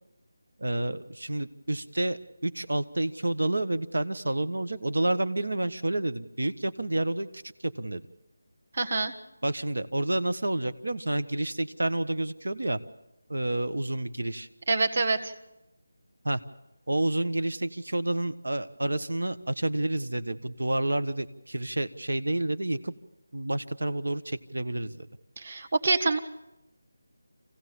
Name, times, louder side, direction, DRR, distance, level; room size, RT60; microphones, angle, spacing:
voice 1, 0.6-8.0 9.4-12.8 13.3-14.5 16.2-16.4 16.9-22.9 23.3-25.1, right 1 dB, 90° right, 12 dB, 1.3 m, -29 dB
voice 2, 8.7-9.1 14.7-15.3 25.4-26.2, right 3 dB, 45° right, 7 dB, 1.6 m, -26 dB
26.5 x 16.0 x 7.1 m, 0.96 s
figure-of-eight pair, 175°, 0 cm